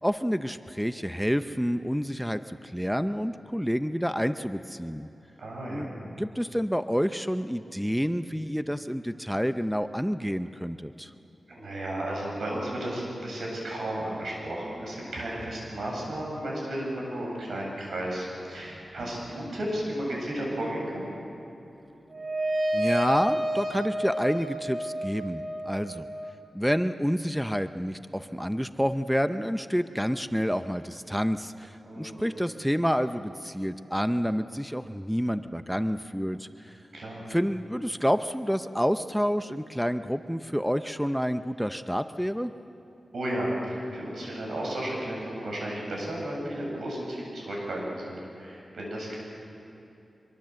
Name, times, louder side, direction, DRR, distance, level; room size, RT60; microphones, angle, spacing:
voice 1, 0.0-5.1 5.7-11.1 22.7-26.1 26.5-36.8 37.3-42.5, equal, ahead, 10 dB, 0.6 m, -28 dB
voice 2, 5.4-5.9 11.5-21.1 31.8-32.3 36.9-37.2 43.1-49.2, right 1 dB, 85° right, -2 dB, 8.0 m, -33 dB
sound 1, 22.1-26.3, right 1 dB, 50° right, 2.4 m, -30 dB
24.5 x 23.0 x 7.7 m, 2.9 s
wide cardioid pair, 100°, 0 cm